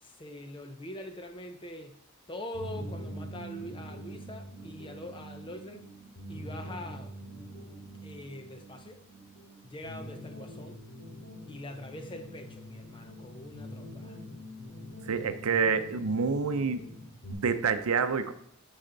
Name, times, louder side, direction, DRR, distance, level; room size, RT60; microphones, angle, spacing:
voice 1, 0.0-2.0 2.3-5.9 6.3-7.1 8.0-9.0 9.6-10.8 11.5-14.2, left 1 dB, 25° left, 6 dB, 0.7 m, -43 dB
sound 1, 2.5-17.3, equal, 50° left, 2.6 m, -44 dB
voice 2, 15.0-16.9 17.3-18.3, right 5 dB, 85° right, 10 dB, 0.6 m, -28 dB
10.5 x 4.2 x 3.9 m, 0.66 s
head